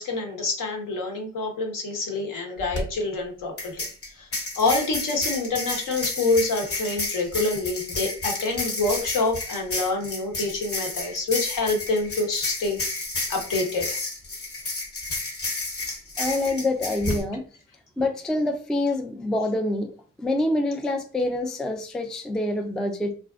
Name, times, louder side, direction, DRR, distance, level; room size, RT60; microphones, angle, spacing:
voice 1, 0.0-3.9 4.2-4.3 4.6-12.8 13.3-14.0, left 3 dB, 65° left, 2 dB, 1.0 m, -26 dB
sound 1, 2.6-2.8 3.6-17.2, left 2 dB, 40° left, 1.0 m, -31 dB
voice 2, 16.2-17.5 18.0-19.9 20.2-23.1, left 1 dB, ahead, 5 dB, 0.3 m, -26 dB
2.4 x 2.1 x 2.4 m, 0.39 s
supercardioid pair, 65°, 35 cm